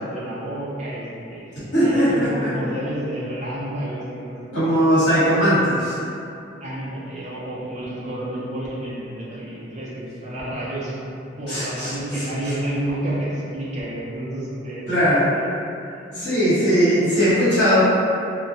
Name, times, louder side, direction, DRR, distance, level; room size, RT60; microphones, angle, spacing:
voice 1, 0.0-1.4 1.8-4.7 6.6-14.9 15.1-15.4 15.9-16.7, right 1 dB, 40° right, -8 dB, 0.5 m, -30 dB
voice 2, 1.7-2.1 4.5-6.0 11.5-11.9 14.9-15.3 16.1-17.8, equal, 60° left, -13 dB, 1.2 m, -18 dB
2.2 x 2.2 x 2.7 m, 2.7 s
head